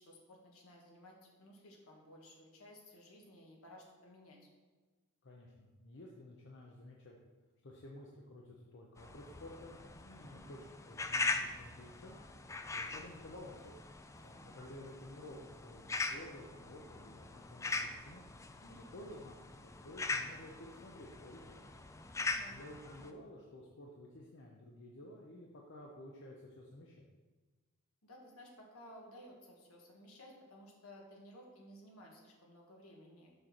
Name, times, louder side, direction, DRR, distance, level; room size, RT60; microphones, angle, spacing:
voice 1, 0.0-4.5 10.2-10.5 14.2-14.4 18.6-18.9 22.2-22.6 28.0-33.3, left 1 dB, 75° left, -1 dB, 1.6 m, -57 dB
voice 2, 5.2-7.2 7.6-10.6 10.9-12.2 12.7-13.7 14.4-18.2 18.7-21.6 22.4-27.1, left 1 dB, 55° left, -2 dB, 0.8 m, -52 dB
sound 1, 9.0-23.1, left 3 dB, 15° left, 0.3 m, -42 dB
6.5 x 4.7 x 5.9 m, 1.3 s
head